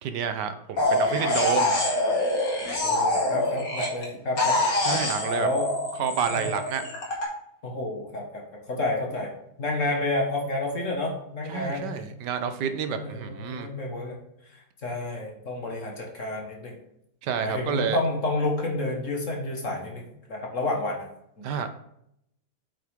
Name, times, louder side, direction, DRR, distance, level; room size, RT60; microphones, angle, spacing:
voice 1, 0.0-1.7 4.8-5.5 6.0-6.8 11.5-13.7 17.2-18.0 21.4-21.7, right 7 dB, 75° right, 9 dB, 1.3 m, -29 dB
sound 1, 0.8-4.1 4.4-7.3, left 1 dB, 80° left, 2.6 m, -25 dB
voice 2, 2.8-4.6 4.9-5.0 5.4-6.5 7.6-9.3 9.6-11.9 12.9-14.2 14.8-16.8 17.4-21.1 21.4-21.5, left 2 dB, 45° left, 0 dB, 1.8 m, -30 dB
8.5 x 5.8 x 3.5 m, 0.76 s
omnidirectional pair, 1.9 m